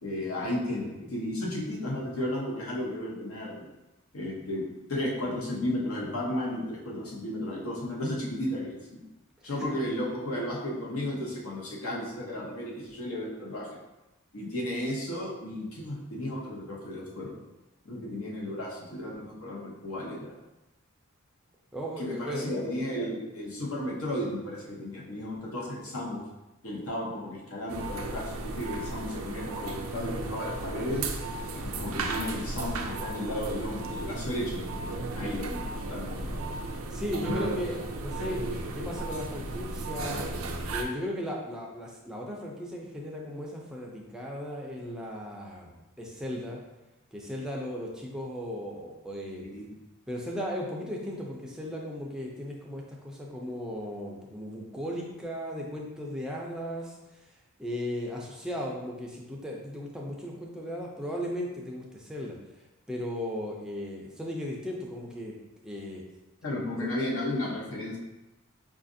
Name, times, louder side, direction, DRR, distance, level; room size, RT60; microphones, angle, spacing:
voice 1, 0.0-3.6 4.1-4.6 4.9-9.0 9.4-13.7 14.3-17.4 17.8-20.3 22.0-26.2 26.6-31.0 31.6-36.5 49.4-49.7 66.4-68.0, left 1 dB, 75° left, -3 dB, 0.9 m, -34 dB
voice 2, 21.7-22.5 36.9-40.2 40.7-46.6 47.1-49.4 50.1-56.9 57.6-61.8 62.1-62.4 62.9-65.3 65.6-66.0 66.8-66.9, equal, 5° right, -2 dB, 0.4 m, -36 dB
sound 1, 27.7-40.8, right 2 dB, 65° right, 0.4 m, -35 dB
4.9 x 2.4 x 2.6 m, 1.0 s
head